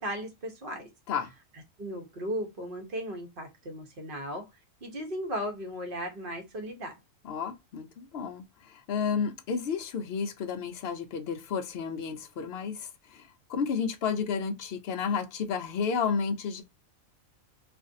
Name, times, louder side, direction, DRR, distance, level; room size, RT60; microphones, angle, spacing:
voice 1, 0.0-0.9 1.8-4.5 4.8-7.0, equal, 45° right, 1.0 m, -36 dB
voice 2, 7.2-16.6, left 6 dB, 65° left, 0.6 m, -32 dB
2.6 x 2.5 x 2.5 m
omnidirectional pair, 1.4 m